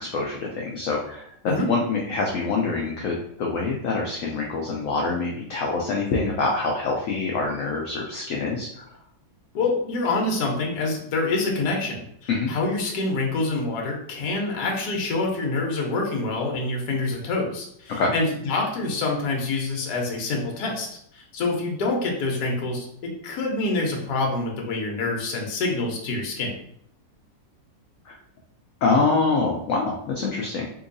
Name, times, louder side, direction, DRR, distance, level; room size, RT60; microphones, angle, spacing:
voice 1, 0.0-8.9 12.3-12.5 18.0-18.1 28.1-28.2 28.8-30.7, left 3 dB, 85° left, -1 dB, 0.7 m, -25 dB
voice 2, 9.5-26.6, left 3 dB, 70° left, 0 dB, 1.2 m, -26 dB
3.7 x 2.7 x 2.5 m, 0.69 s
omnidirectional pair, 2.0 m